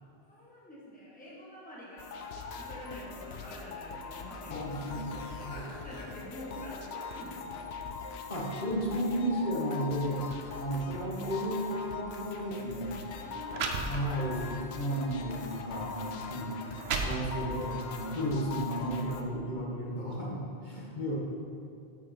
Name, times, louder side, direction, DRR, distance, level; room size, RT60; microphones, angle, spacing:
voice 1, 0.3-4.8 5.1-7.4 10.3-10.6 13.2-14.6, left 1 dB, 10° left, -6 dB, 1.2 m, -47 dB
sound 1, 2.0-19.2, left 5 dB, 80° left, 0.9 m, -42 dB
voice 2, 4.5-5.1 5.4-5.6 8.3-10.2 10.5-12.9 13.8-16.7 17.0-21.1, equal, 50° left, -5 dB, 1.4 m, -33 dB
sound 2, 12.3-12.5 13.2-13.3 13.5-14.4 15.0-15.2 15.9-16.0 16.5-17.7, right 4 dB, 85° right, 0.9 m, -34 dB
8.3 x 5.1 x 4.3 m, 2.5 s
omnidirectional pair, 1.0 m